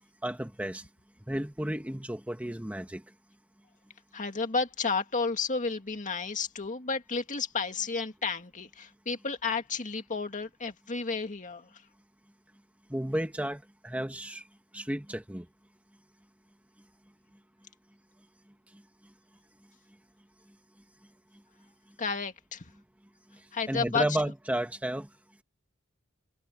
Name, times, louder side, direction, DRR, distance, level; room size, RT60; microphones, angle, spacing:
voice 1, 0.2-0.8 1.3-3.0 12.9-14.4 14.7-15.4 23.7-25.1, right 1 dB, 5° right, 1.4 m, -32 dB
voice 2, 4.1-11.8 22.0-22.7 23.5-24.1, left 4 dB, 35° left, 2.1 m, -32 dB
head